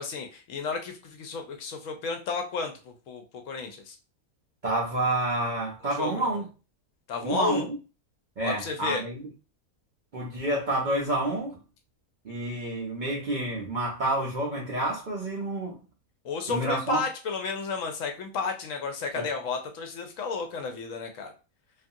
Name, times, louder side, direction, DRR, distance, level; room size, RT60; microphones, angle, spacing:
voice 1, 0.0-4.0 6.0-6.4 7.1-7.7 8.4-9.0 16.2-21.3, left 5 dB, 70° left, 0.9 m, -32 dB
voice 2, 4.6-6.5 7.2-7.8 8.4-9.2 10.1-11.6 12.2-15.8 16.5-17.0 19.1-19.3, right 1 dB, 60° right, 0.5 m, -29 dB
2.5 x 2.3 x 2.6 m
omnidirectional pair, 1.5 m